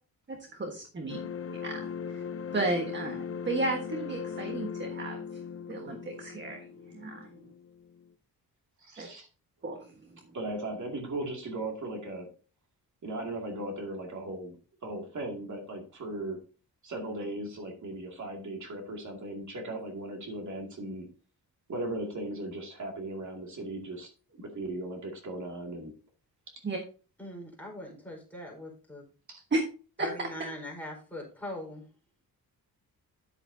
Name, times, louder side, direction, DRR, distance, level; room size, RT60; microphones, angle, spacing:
voice 1, 0.3-1.2 1.6-2.2 2.5-5.2 5.7-6.6 6.9-7.3 9.0-9.1 9.6-9.9 26.6-26.8 29.5-29.6 30.0-30.3, right 2 dB, 30° right, 3 dB, 1.5 m, -33 dB
sound 1, 1.1-8.1, left 7 dB, 40° left, 0.6 m, -39 dB
voice 2, 8.8-9.3 10.3-12.3 13.0-14.6 14.8-16.4 16.8-21.1 21.7-24.1 24.4-25.9 29.3-29.4, right 2 dB, 50° right, 2 dB, 2.4 m, -37 dB
voice 3, 27.2-29.0 30.0-31.9, left 1 dB, 5° left, -2 dB, 4.3 m, -41 dB
10.0 x 8.7 x 2.7 m, 0.36 s
cardioid pair, 120°, 36 cm